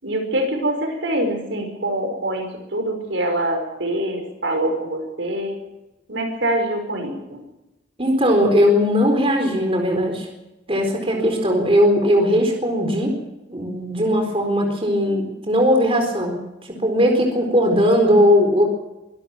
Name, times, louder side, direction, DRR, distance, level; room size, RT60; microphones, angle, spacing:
voice 1, 0.0-5.6 6.1-7.4 11.1-11.6, right 1 dB, 80° right, 4 dB, 5.5 m, -25 dB
voice 2, 8.0-10.3 10.7-13.1 13.5-16.4 16.8-18.6, equal, 30° right, 3 dB, 4.2 m, -18 dB
24.0 x 12.5 x 8.7 m, 0.97 s
head